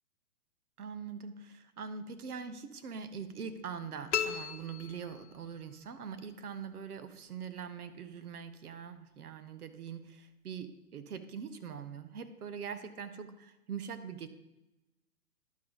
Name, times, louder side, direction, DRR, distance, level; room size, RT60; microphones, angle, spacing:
voice 1, 0.8-14.3, right 6 dB, 75° right, 11 dB, 1.1 m, -43 dB
sound 1, 4.1-5.7, left 9 dB, 50° left, 0.7 m, -36 dB
10.5 x 6.8 x 4.0 m, 0.99 s
hypercardioid pair, 155°, 45 cm